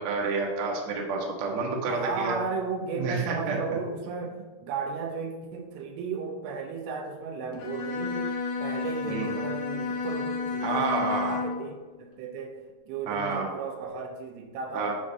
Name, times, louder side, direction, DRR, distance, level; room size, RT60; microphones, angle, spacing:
voice 1, 0.0-2.3 3.0-3.6 9.0-9.3 10.6-11.3 13.1-13.5 14.7-14.9, right 4 dB, 65° right, -1 dB, 1.8 m, -29 dB
voice 2, 1.9-8.3 8.6-12.6 12.9-14.9, right 5 dB, 80° right, 4 dB, 2.7 m, -35 dB
Bowed string instrument, 7.5-11.7, left 4 dB, 85° left, 1.5 m, -31 dB
12.0 x 5.0 x 2.6 m, 1.3 s
omnidirectional pair, 4.7 m